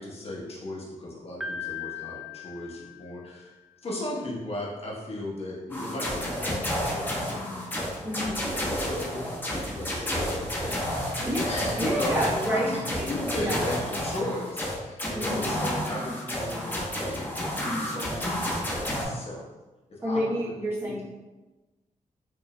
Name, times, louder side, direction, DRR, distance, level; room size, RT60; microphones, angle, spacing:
voice 1, 0.0-3.6 3.8-10.9 11.4-12.2 12.5-19.4 19.9-20.5 20.8-21.0, left 1 dB, 45° left, -4 dB, 1.1 m, -36 dB
Piano, 1.4-3.5, left 6 dB, ahead, 0.4 m, -38 dB
sound 1, 5.7-19.0, equal, 15° left, 0.9 m, -30 dB
voice 2, 8.0-8.4 11.2-11.4 11.8-13.1 13.4-13.6 15.1-15.6 20.0-21.0, equal, 15° right, -7 dB, 1.0 m, -29 dB
5.2 x 3.1 x 2.2 m, 1.1 s
wide cardioid pair, 110°, 14 cm